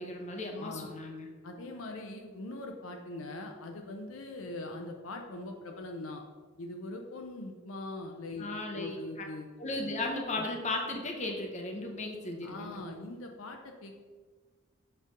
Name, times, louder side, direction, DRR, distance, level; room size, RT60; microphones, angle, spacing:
voice 1, 0.0-1.3 8.4-9.3 9.6-12.8, left 2 dB, 35° left, 2 dB, 0.9 m, -36 dB
voice 2, 0.6-0.9 1.4-6.2 6.6-9.5 10.4-10.5 12.4-14.0, left 2 dB, 75° left, 3 dB, 0.6 m, -42 dB
6.5 x 3.4 x 5.1 m, 1.5 s
head